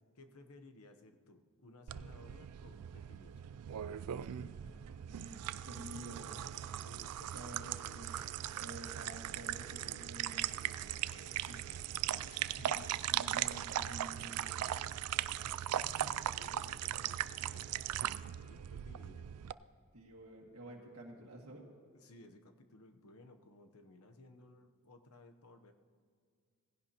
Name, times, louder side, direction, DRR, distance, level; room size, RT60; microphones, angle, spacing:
voice 1, 0.1-3.5 4.6-4.8 6.9-8.6 9.7-12.9 15.4-17.8 18.1-19.4 21.9-25.7, left 2 dB, 75° left, 6 dB, 0.9 m, -59 dB
sound 1, 1.9-19.5, right 11 dB, 90° right, 0.4 m, -39 dB
voice 2, 4.1-4.5 5.1-6.5 7.3-10.5 11.4-11.6 12.6-14.7 15.8-16.1 18.9-19.0 19.9-21.7, right 1 dB, 70° right, -1 dB, 1.9 m, -51 dB
18.0 x 16.0 x 2.9 m, 2.1 s
head